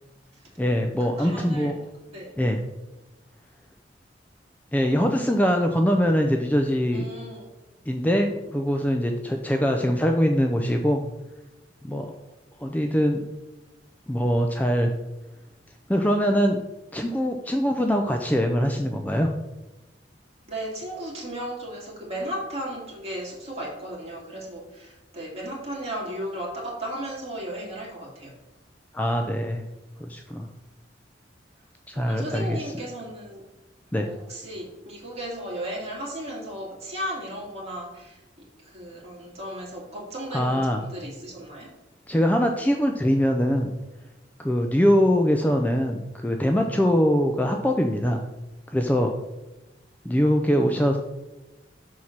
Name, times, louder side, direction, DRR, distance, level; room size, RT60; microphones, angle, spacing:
voice 1, 0.6-1.8 2.4-2.6 4.7-7.0 7.9-11.0 11.8-12.1 12.6-13.2 14.1-14.9 15.9-16.6 16.9-19.3 28.9-29.6 30.0-30.5 31.9-32.7 33.9-34.1 40.3-40.8 42.1-43.7 44.4-48.2 48.7-49.1 50.0-51.0, equal, 10° left, 3 dB, 0.4 m, -23 dB
voice 2, 1.2-1.7 2.1-2.3 6.9-7.5 20.5-28.3 31.9-33.4 34.0-38.1 38.6-41.7, right 1 dB, 35° right, -4 dB, 2.5 m, -35 dB
6.4 x 4.2 x 5.9 m, 1.0 s
head